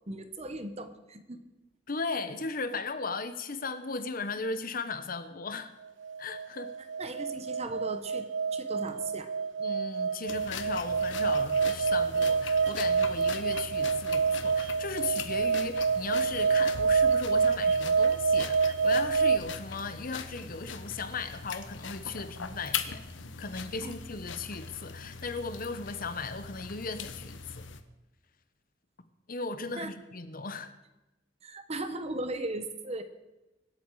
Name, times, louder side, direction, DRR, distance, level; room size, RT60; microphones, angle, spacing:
voice 1, 0.1-1.5 7.0-8.3 8.5-9.3 23.8-24.0 29.6-29.9 31.4-33.0, right 2 dB, 35° right, 1.1 m, -37 dB
voice 2, 1.9-5.7 6.2-6.7 9.6-23.0 23.4-27.7 29.3-30.7, left 4 dB, 50° left, 1.0 m, -37 dB
sound 1, 6.0-19.4, right 5 dB, 75° right, 0.6 m, -27 dB
sound 2, 10.3-27.8, left 6 dB, 80° left, 1.0 m, -41 dB
25.0 x 8.3 x 4.8 m
head